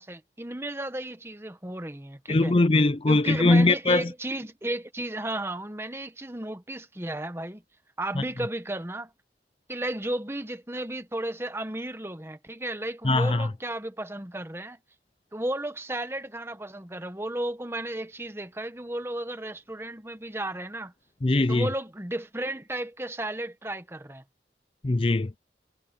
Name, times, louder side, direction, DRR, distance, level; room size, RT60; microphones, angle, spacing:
voice 1, 0.0-2.5 3.1-7.6 8.0-9.1 9.7-14.8 15.3-20.9 21.5-24.2, right 1 dB, 15° right, 1.1 m, -34 dB
voice 2, 2.3-4.1 8.2-8.3 13.0-13.5 21.2-21.7 24.8-25.3, left 2 dB, 30° left, 0.5 m, -21 dB
head